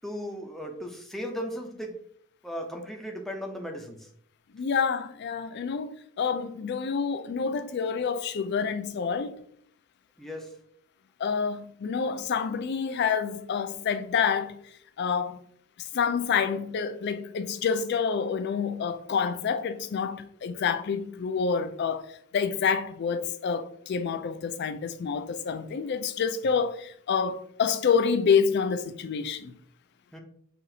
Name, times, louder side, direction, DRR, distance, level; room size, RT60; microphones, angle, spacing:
voice 1, 0.0-2.0 2.4-4.1 10.2-10.6 30.1-30.2, equal, ahead, 0.5 m, -36 dB
voice 2, 4.5-9.3 11.2-14.6 15.0-15.4 15.9-22.1 22.3-29.5, left 6 dB, 55° left, 0.3 m, -28 dB
5.7 x 2.4 x 2.7 m
head